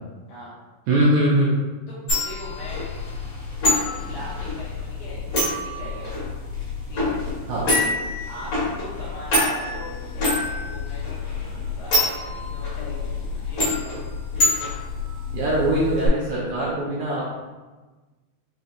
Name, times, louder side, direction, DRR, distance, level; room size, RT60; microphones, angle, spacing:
voice 1, 0.9-1.6 7.5-7.7 15.3-17.3, right 1 dB, 75° right, -7 dB, 1.9 m, -21 dB
voice 2, 1.9-3.0 3.7-6.1 6.9-7.2 7.7-8.0 8.3-11.2 11.8-14.0, left 1 dB, 75° left, -8 dB, 1.9 m, -40 dB
sound 1, 2.1-16.1, left 2 dB, 55° left, 2.2 m, -26 dB
5.7 x 2.8 x 2.5 m, 1.2 s
omnidirectional pair, 4.2 m